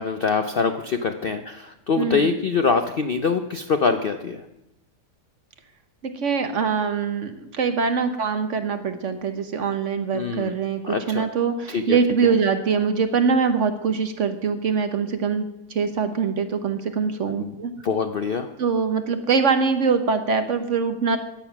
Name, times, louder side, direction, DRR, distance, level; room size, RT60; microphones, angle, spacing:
voice 1, 0.0-4.4 10.1-10.6 10.9-11.2 11.7-12.3 17.4-17.5 17.8-18.5, left 5 dB, 55° left, 7 dB, 0.6 m, -24 dB
voice 2, 2.0-2.3 6.0-17.7 18.6-21.2, right 5 dB, 55° right, 8 dB, 1.1 m, -23 dB
14.5 x 9.2 x 5.9 m, 0.89 s
omnidirectional pair, 1.7 m